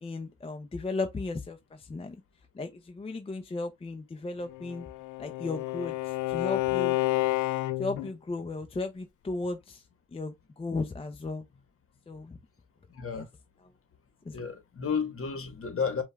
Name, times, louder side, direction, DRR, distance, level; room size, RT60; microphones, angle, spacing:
voice 1, 0.0-2.2 2.5-4.9 5.2-7.0 7.8-9.8 10.1-11.4 12.1-12.4 13.1-13.3 14.2-14.4, left 3 dB, 20° left, 0.6 m, -35 dB
Bowed string instrument, 4.5-8.1, left 19 dB, 75° left, 0.5 m, -30 dB
voice 2, 12.9-13.3 14.3-16.0, left 6 dB, 45° left, 1.3 m, -32 dB
5.1 x 2.4 x 3.4 m
cardioid pair, 90°, 30 cm